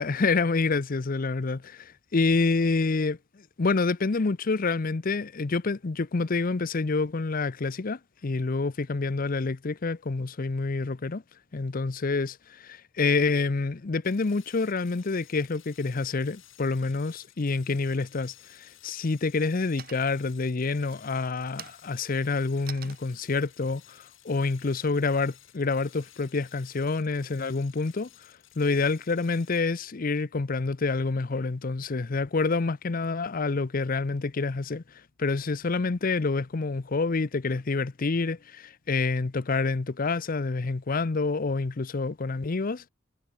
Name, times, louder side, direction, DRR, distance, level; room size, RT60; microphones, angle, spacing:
voice 1, 0.0-11.2 11.5-34.8 35.2-42.9, left 3 dB, 45° left, 0.6 m, -27 dB
sound 1, 14.0-29.8, left 13 dB, 75° left, 4.8 m, -55 dB
sound 2, 18.7-18.8 19.1-19.5 19.8-20.3 20.8-25.2, right 10 dB, 50° right, 1.8 m, -48 dB
head